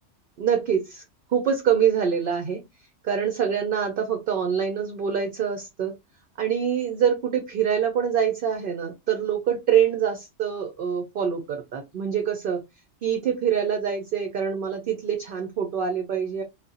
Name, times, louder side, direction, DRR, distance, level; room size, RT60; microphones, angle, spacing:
voice 1, 0.4-1.0 1.3-2.6 3.0-5.9 6.4-12.6 13.0-16.4, right 8 dB, 60° right, 5 dB, 0.6 m, -25 dB
4.0 x 2.1 x 2.4 m, 0.22 s
omnidirectional pair, 1.2 m